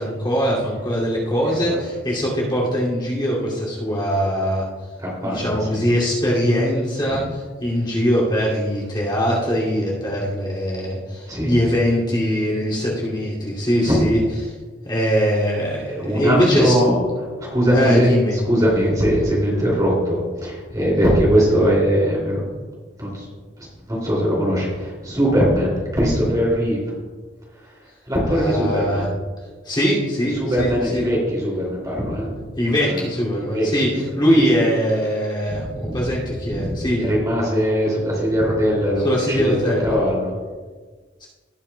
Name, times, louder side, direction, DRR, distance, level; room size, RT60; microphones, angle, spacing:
voice 1, 0.0-4.6 5.2-14.5 14.8-16.7 17.7-18.4 28.3-29.1 29.6-31.0 32.6-37.1 39.0-39.9 41.2-41.3, equal, 25° left, -5 dB, 2.6 m, -21 dB
voice 2, 1.5-1.8 5.0-5.8 7.0-7.2 11.3-11.5 13.8-14.1 15.9-17.0 17.4-18.1 18.4-22.4 23.0-23.3 23.9-26.8 28.1-29.0 30.3-32.3 32.7-33.0 33.4-33.7 34.3-34.4 35.8-36.0 36.4-36.8 37.1-39.5 39.8-40.3, equal, 20° right, -4 dB, 2.7 m, -21 dB
18.0 x 7.0 x 2.3 m, 1.4 s
head